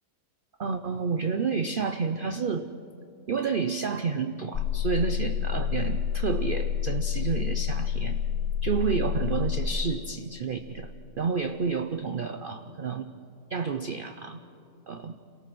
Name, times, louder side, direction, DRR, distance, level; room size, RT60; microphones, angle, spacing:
voice 1, 0.6-2.7 3.3-8.2 8.6-10.9 11.2-13.1 13.5-14.4 14.9-15.2, right 5 dB, 55° right, 8 dB, 0.6 m, -30 dB
sound 1, 4.5-9.7, left 8 dB, 50° left, 1.0 m, -28 dB
27.5 x 18.5 x 6.1 m, 2.6 s
omnidirectional pair, 1.7 m